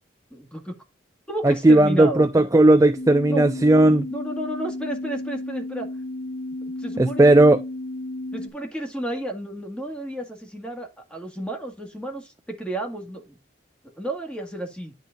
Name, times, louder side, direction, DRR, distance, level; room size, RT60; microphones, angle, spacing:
voice 1, 0.3-0.8 1.3-2.3 3.3-3.5 3.8-5.9 6.8-7.4 8.3-13.4 13.8-14.9, right 1 dB, 5° left, 1.9 m, -32 dB
voice 2, 1.4-4.1 7.0-7.6, right 2 dB, 15° right, 0.3 m, -16 dB
sound 1, 3.0-8.5, left 1 dB, 35° left, 1.1 m, -33 dB
10.0 x 4.1 x 3.9 m
head